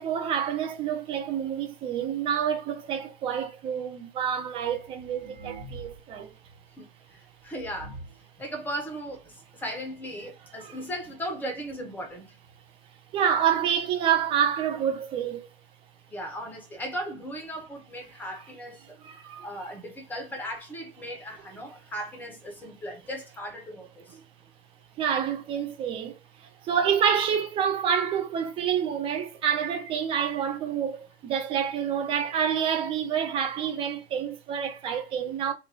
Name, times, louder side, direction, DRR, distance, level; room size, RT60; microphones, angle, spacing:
voice 1, 0.0-6.3 10.6-10.8 13.1-15.5 18.8-19.5 25.0-35.5, right 8 dB, 20° right, 0.4 m, -28 dB
sound 1, 4.5-6.2 6.5-6.6 7.2-7.3 7.6-8.3 9.0-9.1 9.4-9.5 9.7-10.0 10.8-10.9 11.2-11.3 11.9-12.0 12.3-12.4, right 2 dB, 45° right, 1.6 m, -44 dB
voice 2, 6.8-7.9 8.4-9.3 9.6-12.3 16.1-19.0 19.4-24.1, equal, 5° left, 0.7 m, -37 dB
2.6 x 2.2 x 2.7 m
figure-of-eight pair, 95°, 29 cm